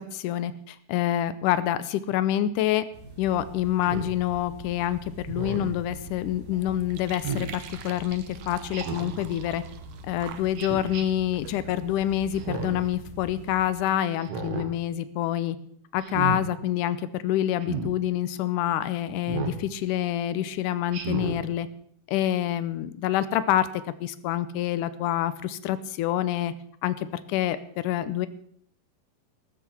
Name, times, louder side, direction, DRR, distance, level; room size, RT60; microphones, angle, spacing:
voice 1, 0.0-2.8 3.2-9.6 10.1-15.6 15.9-21.7 22.1-23.7 24.0-26.5 26.8-27.6 27.8-28.3, left 12 dB, 75° left, 14 dB, 2.1 m, -27 dB
sound 1, 2.9-13.6, right 1 dB, 85° right, 7.9 m, -44 dB
Speech synthesizer, 3.8-4.2 5.3-5.8 7.2-7.5 8.7-9.2 10.6-11.0 12.3-12.9 14.2-14.7 16.0-16.4 17.6-17.9 19.3-19.6 20.9-21.4, right 6 dB, 50° right, 2.2 m, -32 dB
sound 2, 5.3-12.5, right 9 dB, 70° right, 2.3 m, -47 dB
14.5 x 14.0 x 4.5 m, 0.64 s
omnidirectional pair, 4.1 m